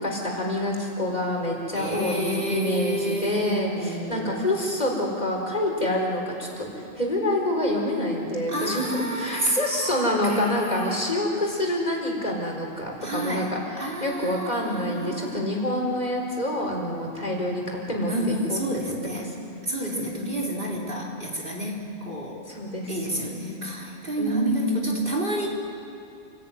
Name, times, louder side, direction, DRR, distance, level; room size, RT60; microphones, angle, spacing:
voice 1, 0.0-19.4 19.8-20.1 22.5-23.4 23.7-23.8 24.2-24.9, left 1 dB, 40° left, -1 dB, 4.6 m, -27 dB
voice 2, 1.7-4.4 8.5-11.0 13.0-13.5 13.8-15.4 18.1-19.3 19.6-22.4 22.9-25.5, right 1 dB, 55° right, -2 dB, 4.3 m, -30 dB
29.5 x 18.0 x 9.3 m, 2.6 s
omnidirectional pair, 1.1 m